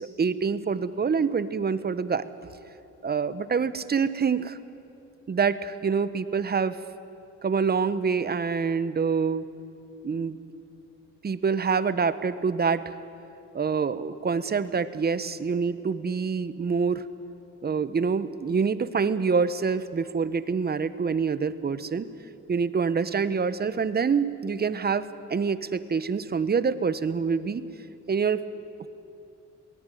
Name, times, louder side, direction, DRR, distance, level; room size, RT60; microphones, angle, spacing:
voice 1, 0.0-2.3 3.0-4.6 5.3-6.8 7.4-9.5 10.0-10.4 11.2-13.0 13.5-17.0 17.6-22.1 22.5-27.6 28.1-28.4 28.8-28.9, right 5 dB, 30° right, 14 dB, 1.0 m, -26 dB
22.5 x 18.0 x 9.2 m, 2.7 s
cardioid pair, 90°, 30 cm